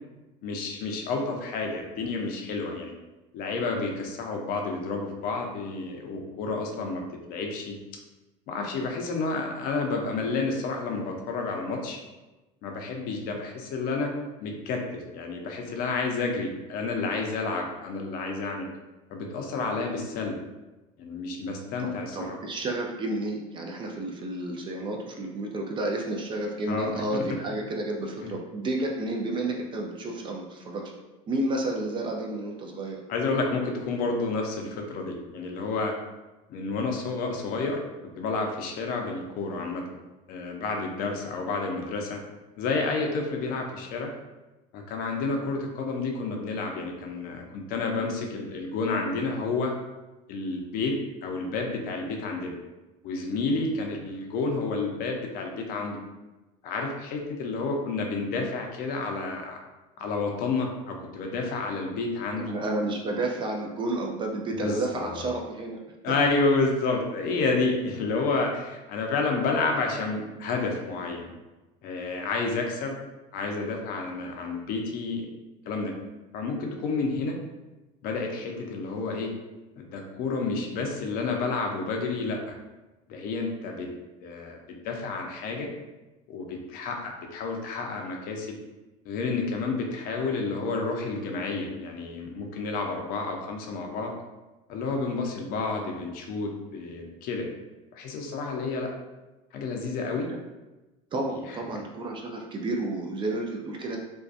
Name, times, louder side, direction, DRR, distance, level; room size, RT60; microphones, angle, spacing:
voice 1, 0.4-2.9 3.3-7.0 7.3-7.8 8.5-12.0 12.6-14.1 14.4-18.7 19.1-20.4 21.0-22.4 26.7-27.0 28.2-28.3 33.1-35.9 36.5-37.8 38.2-39.8 40.3-42.2 42.6-44.1 44.7-49.7 50.3-50.9 51.2-52.6 53.0-56.0 56.6-59.6 60.0-62.5 64.5-65.3 66.0-71.3 71.8-73.0 73.3-75.3 75.7-75.9 76.3-77.4 78.0-79.3 79.8-82.5 83.1-83.9 84.2-84.6 84.8-85.7 86.3-88.5 89.1-94.1 94.7-97.5 97.9-98.9 99.5-100.3 101.3-101.6, left 3 dB, 55° left, 2 dB, 0.5 m, -30 dB
voice 2, 21.8-30.9 31.3-33.0 62.4-65.8 101.1-104.0, right 2 dB, 30° right, 1 dB, 0.4 m, -31 dB
2.5 x 2.2 x 2.4 m, 1.1 s
supercardioid pair, 110°, 18 cm